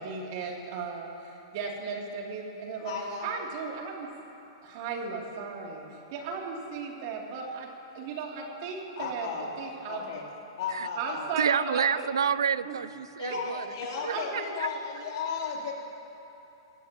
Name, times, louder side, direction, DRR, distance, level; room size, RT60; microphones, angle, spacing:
voice 1, 0.0-2.9 3.2-4.1 4.6-7.7 7.9-9.3 9.6-10.1 10.9-12.1 12.6-12.8 13.3-13.4 13.8-14.5 14.9-15.1, right 5 dB, 50° right, -1 dB, 3.0 m, -36 dB
voice 2, 2.8-3.3 9.0-9.5 9.9-10.2 10.6-11.2 13.2-15.7, left 5 dB, 65° left, -2 dB, 3.7 m, -34 dB
voice 3, 11.4-13.7 14.0-14.7, right 7 dB, 90° right, 17 dB, 0.4 m, -29 dB
24.0 x 17.0 x 3.0 m, 2.9 s
hypercardioid pair, 130°, 2 cm